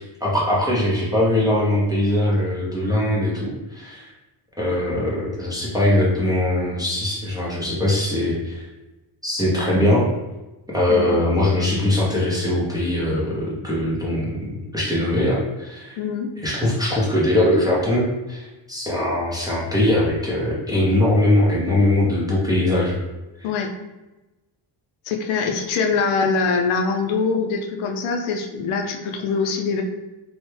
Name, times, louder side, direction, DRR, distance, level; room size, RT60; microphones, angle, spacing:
voice 1, 0.2-4.1 4.6-8.6 9.2-10.0 10.7-16.0 16.4-23.0, left 1 dB, 10° right, -7 dB, 0.4 m, -21 dB
voice 2, 16.0-16.3 23.4-23.7 25.0-29.8, left 5 dB, 80° left, 3 dB, 0.6 m, -23 dB
3.3 x 2.1 x 3.1 m, 1.1 s
cardioid pair, 155°, 49 cm